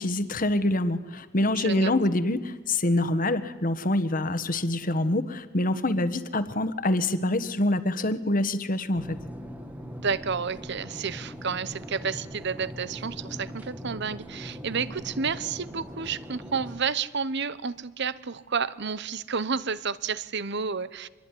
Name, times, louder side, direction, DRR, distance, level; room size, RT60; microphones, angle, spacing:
voice 1, 0.0-9.2, left 1 dB, 40° left, 12 dB, 1.4 m, -26 dB
voice 2, 1.6-1.9 10.0-21.1, right 5 dB, 55° right, 17 dB, 0.9 m, -30 dB
sound 1, 9.0-16.8, equal, 10° right, 1.7 m, -41 dB
26.5 x 21.5 x 9.9 m, 1.3 s
head